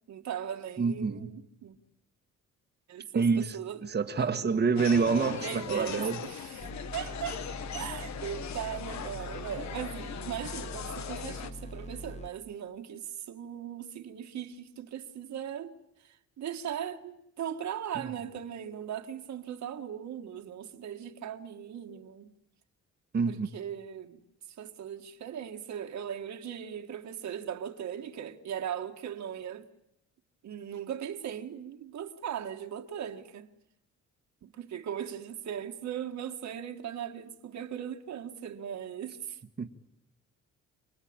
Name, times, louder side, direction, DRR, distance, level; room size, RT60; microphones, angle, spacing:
voice 1, 0.1-1.8 2.9-3.8 4.2-4.3 5.2-7.4 7.7-15.7 16.0-22.3 23.3-24.2 24.6-29.7 30.4-33.5 34.4-39.4, right 9 dB, 65° right, 2.1 m, -39 dB
voice 2, 0.8-1.3 3.1-6.2 23.1-23.5 39.6-39.7, right 5 dB, 35° right, 1.5 m, -27 dB
sound 1, 4.8-11.5, left 8 dB, 65° left, 1.4 m, -40 dB
sound 2, 6.6-12.3, equal, 20° left, 1.6 m, -43 dB
29.0 x 19.5 x 8.9 m
cardioid pair, 90°, 30 cm